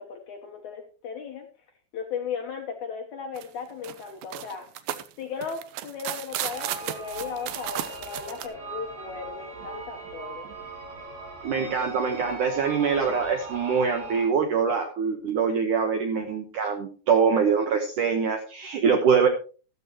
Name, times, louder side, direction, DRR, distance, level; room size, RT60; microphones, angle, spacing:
voice 1, 0.0-1.5 1.9-4.7 5.2-10.5, left 6 dB, 75° left, 3 dB, 1.7 m, -36 dB
sound 1, 3.4-3.5 3.8-8.5, right 12 dB, 90° right, 2.0 m, -34 dB
sound 2, 6.3-14.3, right 3 dB, 50° right, 6.3 m, -39 dB
voice 2, 11.4-19.3, right 6 dB, 70° right, 5 dB, 1.9 m, -24 dB
14.0 x 12.5 x 2.9 m, 0.36 s
omnidirectional pair, 5.0 m